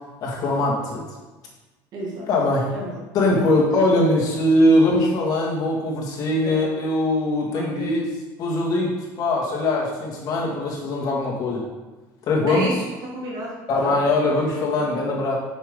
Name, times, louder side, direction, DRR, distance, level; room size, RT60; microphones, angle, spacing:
voice 1, 0.2-1.0 2.3-2.7 3.1-8.0 8.4-11.6 12.3-12.6 13.7-15.4, left 1 dB, 50° left, -2 dB, 2.0 m, -21 dB
voice 2, 1.9-2.3 2.7-3.0 6.4-6.6 7.5-8.0 12.5-14.0 14.3-14.4 14.9-15.0, right 2 dB, 55° right, -3 dB, 1.8 m, -31 dB
7.1 x 5.9 x 3.7 m, 1.2 s
cardioid pair, 115°, 8 cm